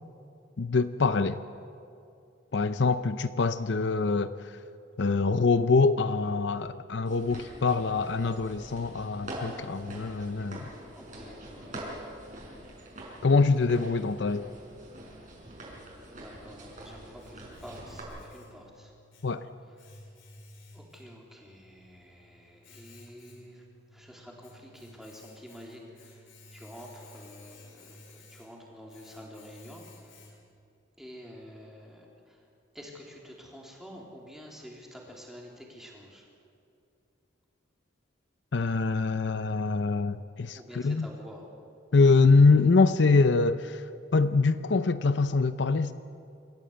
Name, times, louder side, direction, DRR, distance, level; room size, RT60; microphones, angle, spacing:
voice 1, 0.6-1.4 2.5-4.3 5.0-10.7 13.2-14.5 19.2-19.4 38.5-40.6 40.8-41.1 41.9-43.8 44.1-45.9, left 4 dB, 65° left, 12 dB, 0.6 m, -24 dB
sound 1, 7.1-18.0, right 1 dB, 40° right, 6.0 m, -44 dB
voice 2, 10.9-11.8 16.0-18.9 19.6-19.9 20.7-23.7 23.9-30.4 31.0-32.5 32.7-36.3 40.5-41.5, equal, ahead, -2 dB, 3.5 m, -48 dB
Domestic sounds home sounds, 16.8-30.7, left 1 dB, 85° left, 4.0 m, -54 dB
27.0 x 14.5 x 8.1 m, 2.6 s
head